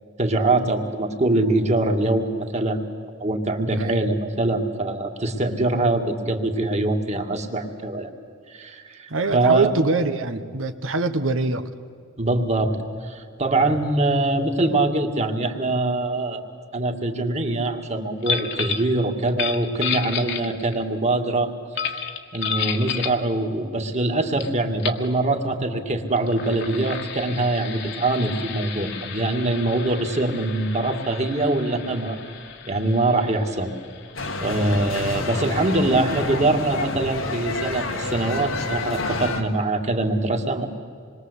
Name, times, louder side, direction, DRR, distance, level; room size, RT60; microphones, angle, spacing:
voice 1, 0.2-2.9 3.2-8.1 8.5-9.7 12.2-16.4 16.7-21.5 21.9-22.0 22.3-32.2 32.7-33.7 34.4-40.7, right 2 dB, 35° right, 4 dB, 2.2 m, -23 dB
voice 2, 3.7-4.0 9.1-11.6 13.6-13.7 35.1-35.3, right 3 dB, 85° right, 9 dB, 1.3 m, -24 dB
sound 1, 18.2-18.9 19.3-20.8 21.8-23.2 24.4-24.5 24.8-25.1 26.1-35.4, left 6 dB, 60° left, 1.7 m, -32 dB
sound 2, 34.1-39.4, left 3 dB, 90° left, 2.2 m, -29 dB
27.0 x 22.0 x 8.2 m, 2.2 s
head